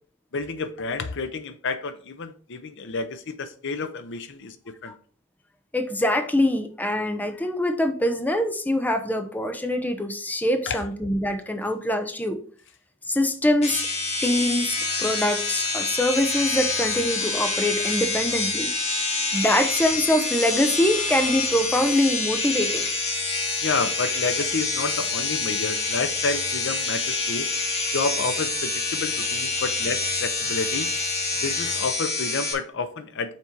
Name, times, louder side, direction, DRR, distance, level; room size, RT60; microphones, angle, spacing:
voice 1, 0.3-4.9 10.7-10.8 23.6-27.5 27.9-30.9 31.4-33.3, left 4 dB, 60° left, 0.7 m, -30 dB
voice 2, 5.7-12.4 13.1-13.8 14.2-18.7 19.3-22.9, left 1 dB, 10° left, 0.7 m, -24 dB
sound 1, 13.6-32.5, left 3 dB, 30° left, 1.5 m, -27 dB
5.9 x 4.3 x 4.6 m
head